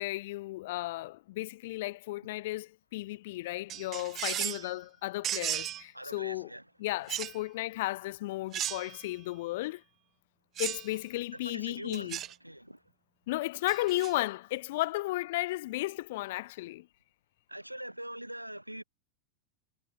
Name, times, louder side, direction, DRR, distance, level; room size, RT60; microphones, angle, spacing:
voice 1, 0.0-6.5 6.8-9.8 10.6-12.2 13.3-16.9, left 18 dB, 50° left, 1.1 m, -34 dB
sound 1, 3.7-4.7 5.2-5.8 7.1-7.4 8.5-9.1 10.6-10.9 11.9-12.3 13.7-14.1, right 12 dB, 30° right, 0.3 m, -35 dB
voice 2, 4.4-4.8 5.9-6.6 10.9-11.0 11.3-12.8 17.5-18.8, right 1 dB, 90° right, 0.5 m, -43 dB
figure-of-eight pair, 90°, 0 cm